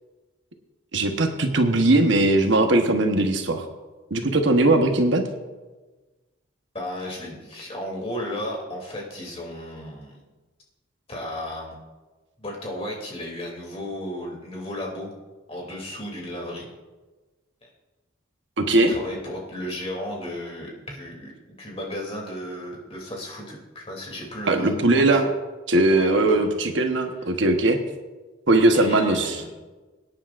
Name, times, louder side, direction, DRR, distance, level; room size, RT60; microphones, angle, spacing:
voice 1, 0.9-3.7 4.1-5.2 18.6-18.9 24.5-25.3 25.7-27.8 28.5-29.4, right 2 dB, 70° right, 5 dB, 1.1 m, -19 dB
voice 2, 6.7-10.2 11.1-11.8 12.4-15.1 15.5-16.7 17.6-17.7 18.8-25.2 25.9-26.5 28.7-29.5, left 1 dB, 30° left, -2 dB, 2.8 m, -34 dB
23.5 x 9.9 x 2.5 m, 1.2 s
head